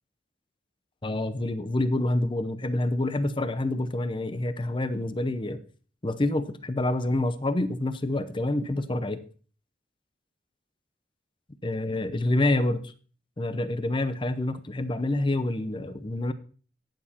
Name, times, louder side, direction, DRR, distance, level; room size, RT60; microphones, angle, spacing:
voice 1, 1.0-5.6 6.0-9.2 11.6-12.9 13.4-16.3, left 2 dB, 30° left, 12 dB, 0.7 m, -27 dB
18.0 x 7.2 x 2.9 m, 0.40 s
head